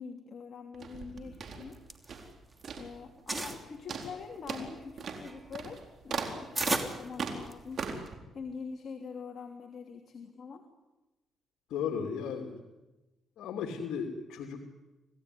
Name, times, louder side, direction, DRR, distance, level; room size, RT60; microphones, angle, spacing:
voice 1, 0.0-1.8 2.8-7.9 8.3-10.6, left 5 dB, 55° left, 3 dB, 3.1 m, -44 dB
sound 1, 0.7-2.4 2.6-3.0 3.3-3.6 3.9-8.1, right 5 dB, 55° right, 4.2 m, -39 dB
sound 2, 1.7-2.7 3.0-3.6 4.2-7.8, right 2 dB, 20° right, 2.9 m, -36 dB
voice 2, 11.7-12.6 13.4-14.6, left 7 dB, 80° left, 2 dB, 2.8 m, -35 dB
27.5 x 18.0 x 9.8 m, 1.1 s
cardioid pair, 95°, 0 cm